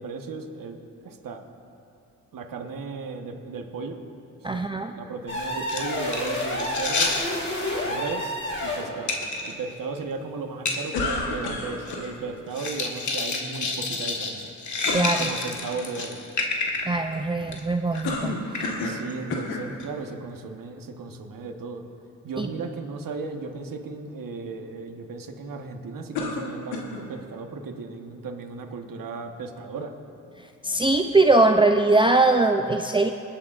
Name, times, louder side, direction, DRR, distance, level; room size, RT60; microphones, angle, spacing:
voice 1, 0.0-1.4 2.3-4.0 4.5-4.7 4.9-7.1 7.8-8.4 8.6-9.2 9.4-14.5 15.2-16.2 18.8-21.8 22.2-29.9, right 4 dB, 60° right, 5 dB, 1.3 m, -35 dB
voice 2, 4.4-4.9 14.9-15.3 16.9-18.4 22.4-22.5 30.6-33.1, right 2 dB, 15° right, 5 dB, 0.5 m, -21 dB
sound 1, 5.3-9.0, left 1 dB, 30° left, 2.7 m, -29 dB
sound 2, 5.7-7.3 9.1-9.5 10.0-10.1 10.7-10.8 11.1-11.2 11.4-12.1 12.5-17.0 17.4-17.6 17.9-18.1 18.5-18.9 19.8-19.9, left 3 dB, 50° left, 1.7 m, -29 dB
sound 3, 10.9-12.1 14.8-15.3 18.0-19.0 19.3-19.7 20.5-20.6 26.1-27.1, left 3 dB, 85° left, 1.4 m, -30 dB
27.0 x 9.1 x 2.5 m, 2.7 s
supercardioid pair, 45°, 37 cm